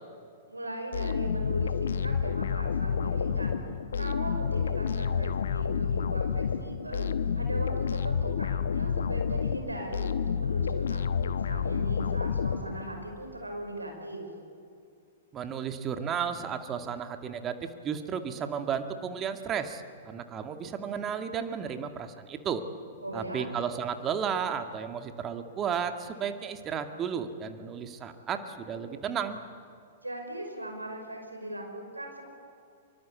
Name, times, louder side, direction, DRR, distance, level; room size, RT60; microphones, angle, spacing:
voice 1, 0.5-3.6 3.9-7.1 7.4-11.0 11.3-14.3 23.0-23.5 30.0-32.2, right 1 dB, 85° right, 3 dB, 5.7 m, -39 dB
sound 1, 0.9-13.1, left 6 dB, 65° left, 1.1 m, -29 dB
voice 2, 15.3-22.6 23.1-29.4, right 7 dB, 25° right, 7 dB, 2.0 m, -33 dB
24.5 x 23.5 x 8.4 m, 2.4 s
figure-of-eight pair, 105°, 0 cm